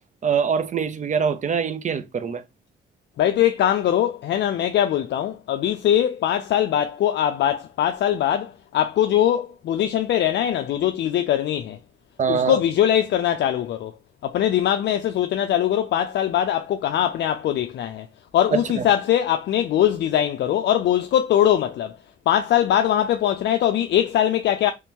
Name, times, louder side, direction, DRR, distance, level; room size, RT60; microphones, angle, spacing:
voice 1, 0.2-2.4 12.2-12.6 18.5-18.9, right 6 dB, 40° right, 0.5 m, -23 dB
voice 2, 3.2-11.8 12.3-13.9 14.2-18.1 18.3-22.0 22.3-24.7, left 11 dB, 60° left, 0.4 m, -21 dB
3.1 x 2.9 x 3.4 m
cardioid pair, 90°, 20 cm